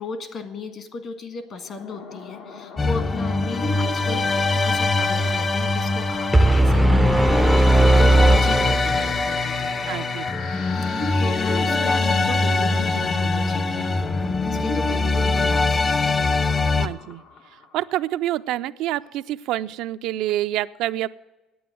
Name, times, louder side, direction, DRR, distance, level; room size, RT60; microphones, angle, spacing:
voice 1, 0.0-4.3 4.6-9.9 10.7-13.9 14.5-15.9 16.4-16.5, left 4 dB, 55° left, 7 dB, 1.6 m, -35 dB
sound 1, 1.6-17.9, left 5 dB, 85° left, 1.3 m, -37 dB
sound 2, 2.8-16.9, left 3 dB, 35° left, 0.8 m, -23 dB
sound 3, 6.3-9.4, right 1 dB, 5° right, 0.4 m, -17 dB
voice 2, 9.9-10.2 16.7-17.2 17.7-21.1, right 14 dB, 80° right, 12 dB, 0.4 m, -27 dB
9.4 x 8.8 x 9.2 m, 1.1 s
cardioid pair, 105°, 0 cm